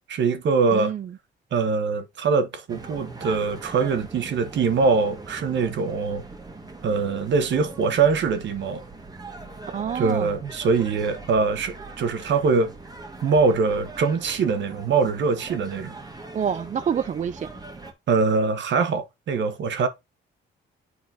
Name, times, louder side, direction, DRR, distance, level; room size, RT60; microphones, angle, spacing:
voice 1, 0.1-0.9 1.5-6.2 6.8-8.8 9.9-12.7 13.2-16.0 18.1-19.9, right 4 dB, 65° right, 1.3 m, -23 dB
voice 2, 0.7-1.1 9.7-10.3 16.3-17.5, right 8 dB, 40° right, 0.4 m, -27 dB
sound 1, 2.7-17.9, right 3 dB, 20° right, 1.7 m, -41 dB
9.4 x 4.3 x 2.7 m
cardioid pair, 90°, 20 cm